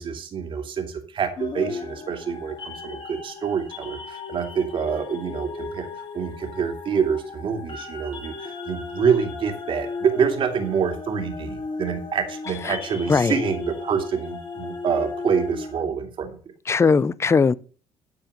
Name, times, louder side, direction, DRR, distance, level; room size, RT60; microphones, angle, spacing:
voice 1, 0.0-16.4, right 6 dB, 50° right, 2.6 m, -26 dB
sound 1, 1.4-15.8, left 4 dB, 45° left, 2.8 m, -36 dB
voice 2, 16.7-17.5, left 5 dB, 25° left, 0.5 m, -19 dB
12.0 x 4.5 x 6.6 m
supercardioid pair, 75°, 11 cm